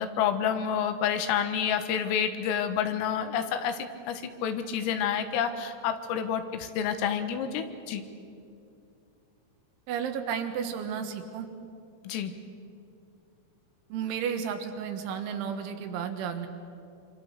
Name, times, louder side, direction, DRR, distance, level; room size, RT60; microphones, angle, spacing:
voice 1, 0.0-8.0 12.0-12.3, left 8 dB, 85° left, 8 dB, 4.1 m, -29 dB
voice 2, 9.9-11.5 13.9-16.5, right 7 dB, 70° right, 6 dB, 3.7 m, -32 dB
26.5 x 25.5 x 6.6 m, 2.5 s
omnidirectional pair, 5.8 m